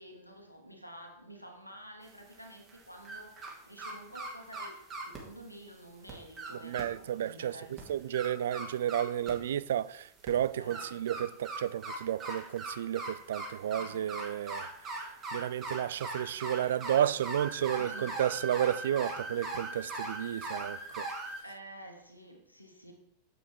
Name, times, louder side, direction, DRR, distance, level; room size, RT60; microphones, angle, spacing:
voice 1, 0.0-8.1 10.6-10.9 13.6-14.2 17.8-18.2 21.4-22.9, right 1 dB, 90° left, 1.4 m, -50 dB
sound 1, 2.0-3.5 3.8-5.2 5.7-5.8 6.1-6.8 7.3-7.4 7.8-9.5 10.2-21.4, right 2 dB, 30° right, 2.3 m, -40 dB
voice 2, 6.6-7.6 7.9-14.7 15.0-21.1, right 10 dB, 60° right, 0.3 m, -32 dB
7.5 x 6.7 x 4.6 m
figure-of-eight pair, 90°, 0 cm